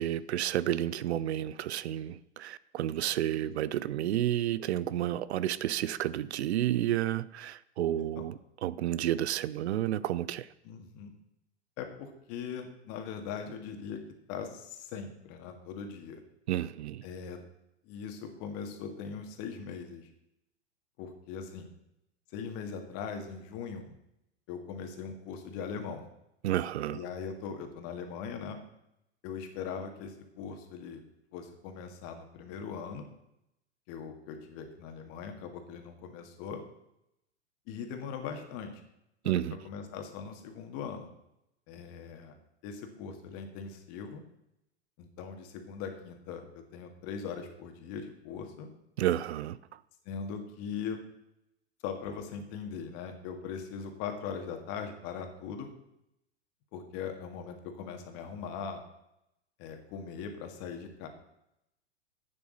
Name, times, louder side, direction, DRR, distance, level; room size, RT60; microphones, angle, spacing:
voice 1, 0.0-10.5 16.5-17.0 26.4-27.0 39.2-39.6 49.0-49.6, right 12 dB, 70° right, 0.5 m, -31 dB
voice 2, 7.9-8.2 10.6-11.1 11.8-14.0 14.3-16.2 17.0-17.5 17.8-20.1 21.0-21.7 22.3-24.0 24.5-26.0 26.9-28.6 29.2-31.0 31.3-33.0 33.9-36.6 37.7-38.8 39.2-41.1 41.7-42.4 42.6-44.2 45.0-48.7 50.1-51.0 51.8-55.7 56.7-58.8 59.6-61.1, left 6 dB, 45° left, 1.8 m, -40 dB
11.0 x 8.7 x 3.9 m
hypercardioid pair, 105°, 35 cm